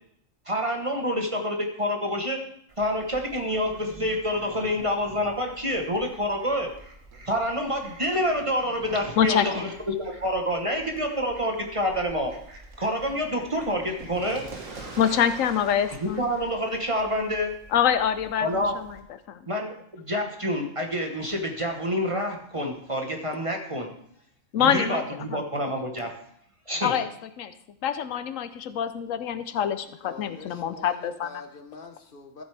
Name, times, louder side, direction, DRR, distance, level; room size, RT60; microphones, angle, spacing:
voice 1, 0.5-2.4 2.8-6.7 7.3-9.7 10.0-12.3 12.8-14.4 16.0-17.5 18.4-18.7 19.5-23.9 24.6-26.1 26.7-26.9, equal, 25° right, 2 dB, 1.1 m, -27 dB
Fowl, 2.7-19.0, right 2 dB, 75° right, 1.9 m, -47 dB
voice 2, 9.2-9.5 15.0-16.3 17.7-18.9 19.3-19.4 24.5-25.0 25.3-25.4 26.8-27.1 27.4-27.5 27.8-31.3, left 9 dB, 80° left, 12 dB, 1.0 m, -25 dB
voice 3, 30.0-32.4, left 4 dB, 45° left, 6 dB, 1.0 m, -44 dB
13.0 x 7.9 x 3.4 m, 0.71 s
omnidirectional pair, 1.4 m